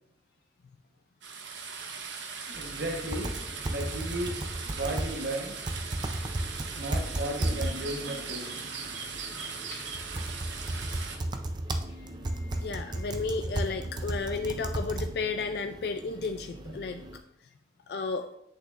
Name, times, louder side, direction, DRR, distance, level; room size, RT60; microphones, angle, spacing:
sound 1, 1.2-11.2, right 5 dB, 90° right, 1.0 m, -39 dB
sound 2, 2.5-17.2, right 1 dB, 25° right, 0.4 m, -35 dB
voice 1, 2.5-3.3 3.7-5.5 6.8-8.6, right 1 dB, 70° right, 2 dB, 1.1 m, -35 dB
voice 2, 12.4-17.0 17.9-18.3, left 4 dB, 60° left, 7 dB, 0.3 m, -33 dB
8.1 x 6.5 x 2.5 m, 0.76 s
head